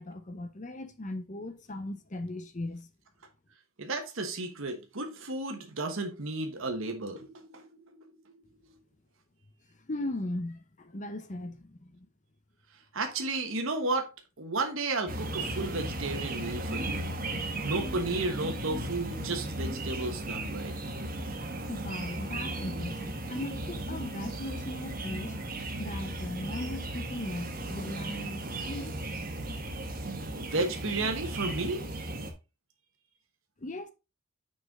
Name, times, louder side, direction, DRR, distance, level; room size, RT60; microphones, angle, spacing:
voice 1, 0.0-2.9 9.7-12.1 21.7-25.4 25.8-28.9 33.6-33.9, left 1 dB, 35° left, 0.7 m, -38 dB
voice 2, 3.8-8.0 8.3-8.4 12.9-14.1 14.4-17.1 17.6-20.7 30.3-31.8, right 2 dB, 70° right, 1.3 m, -33 dB
sound 1, 15.1-32.3, right 1 dB, 40° right, 1.3 m, -36 dB
6.5 x 5.5 x 3.6 m
head